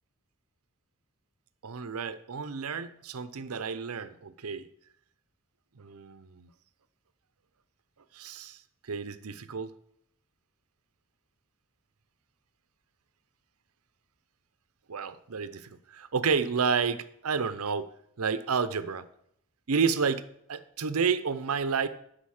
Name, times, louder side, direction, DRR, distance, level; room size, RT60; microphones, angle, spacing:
voice 1, 1.6-4.7 5.8-6.5 8.1-8.6 8.9-9.7 14.9-17.9 18.2-19.0 19.7-21.9, right 5 dB, 90° right, 13 dB, 0.7 m, -30 dB
12.0 x 5.2 x 6.4 m, 0.71 s
head